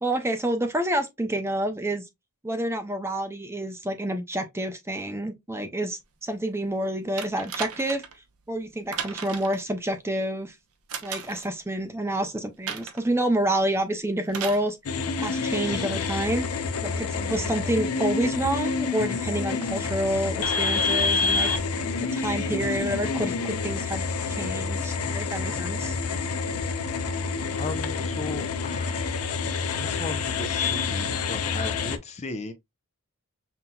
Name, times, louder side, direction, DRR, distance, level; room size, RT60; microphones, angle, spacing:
voice 1, 0.0-2.0 2.4-8.0 8.5-10.6 11.0-14.8 15.2-21.5 22.0-25.9, right 1 dB, 10° right, 0.6 m, -28 dB
sound 1, 7.2-8.2 8.9-9.6 10.9-11.5 12.7-13.1 14.3-14.7 15.7-15.8, right 7 dB, 75° right, 0.8 m, -35 dB
sound 2, 14.8-32.0, left 4 dB, 80° left, 0.6 m, -28 dB
voice 2, 16.8-17.6 27.6-32.5, left 3 dB, 30° left, 0.5 m, -37 dB
5.8 x 2.7 x 2.3 m
head